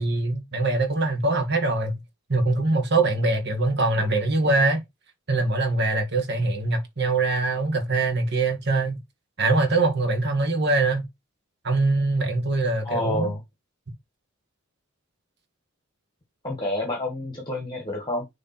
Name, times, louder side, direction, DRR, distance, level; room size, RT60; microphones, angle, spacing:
voice 1, 0.0-1.9 2.3-4.8 5.3-8.9 9.4-11.1 11.6-13.3, right 2 dB, 50° right, 1.9 m, -23 dB
voice 2, 12.8-13.4 16.4-18.3, left 2 dB, 20° left, 1.5 m, -28 dB
6.6 x 3.7 x 4.3 m
head